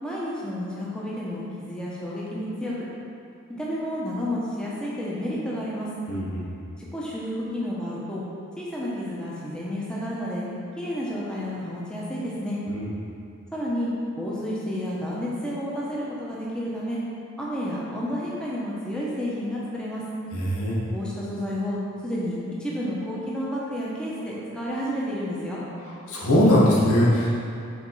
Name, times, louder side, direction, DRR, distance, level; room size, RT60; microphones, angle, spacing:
voice 1, 0.0-2.9 3.5-6.0 6.8-8.2 8.6-10.4 10.8-12.6 13.5-13.9 14.2-17.0 17.4-20.1 20.9-21.8 22.0-25.6, equal, 5° left, -7 dB, 0.9 m, -31 dB
voice 2, 6.1-6.4 12.7-12.8 20.5-20.9 26.1-27.3, left 1 dB, 85° left, -5 dB, 1.3 m, -20 dB
5.2 x 4.3 x 5.5 m, 2.6 s
head